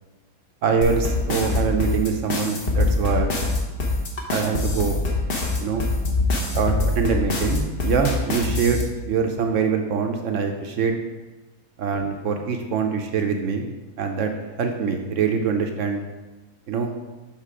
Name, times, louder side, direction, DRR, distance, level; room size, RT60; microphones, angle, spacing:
voice 1, 0.6-3.3 4.3-5.0 5.6-5.8 6.5-10.9 11.8-13.7 14.0-14.3 14.6-16.0 16.7-16.9, right 5 dB, 65° right, 4 dB, 0.8 m, -24 dB
sound 1, 0.8-8.8, left 2 dB, 40° left, 1.0 m, -24 dB
7.4 x 3.6 x 4.8 m, 1.2 s
omnidirectional pair, 1.7 m